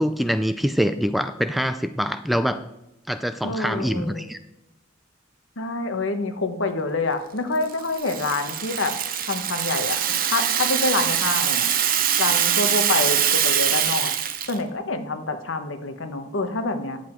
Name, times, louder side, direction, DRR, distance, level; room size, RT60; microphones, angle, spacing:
voice 1, 0.0-2.6 3.1-4.4, equal, ahead, 10 dB, 0.3 m, -24 dB
voice 2, 3.4-4.2 5.6-8.9 9.3-10.0 10.3-11.7 12.2-14.1 14.5-17.0, left 3 dB, 75° left, 8 dB, 1.1 m, -26 dB
Rattle (instrument), 7.6-14.6, right 9 dB, 45° right, 0.8 m, -23 dB
10.0 x 7.8 x 4.5 m, 0.89 s
head